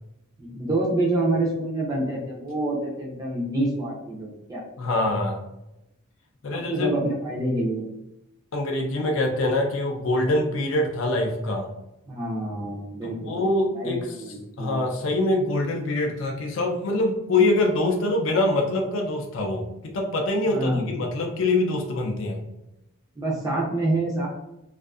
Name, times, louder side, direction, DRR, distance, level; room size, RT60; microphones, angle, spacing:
voice 1, 0.4-4.6 6.5-7.9 12.1-13.3 13.7-14.8 20.5-20.9 23.2-24.3, right 2 dB, 15° right, -4 dB, 0.5 m, -27 dB
voice 2, 4.8-5.4 6.4-6.9 8.5-11.7 13.0-14.1 14.6-22.5, left 2 dB, 60° left, 1 dB, 0.4 m, -24 dB
2.5 x 2.4 x 2.3 m, 0.90 s
head